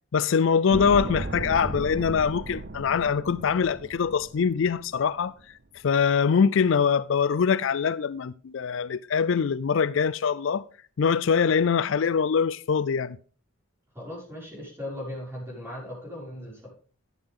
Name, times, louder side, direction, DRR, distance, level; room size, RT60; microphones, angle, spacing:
voice 1, 0.1-5.3 5.8-10.6 11.0-13.2, left 6 dB, 65° left, 0.4 m, -23 dB
sound 1, 0.7-5.0 5.2-5.3, right 2 dB, 50° right, 0.8 m, -35 dB
voice 2, 13.9-16.7, left 1 dB, 10° right, 5.8 m, -38 dB
12.0 x 11.0 x 3.7 m
head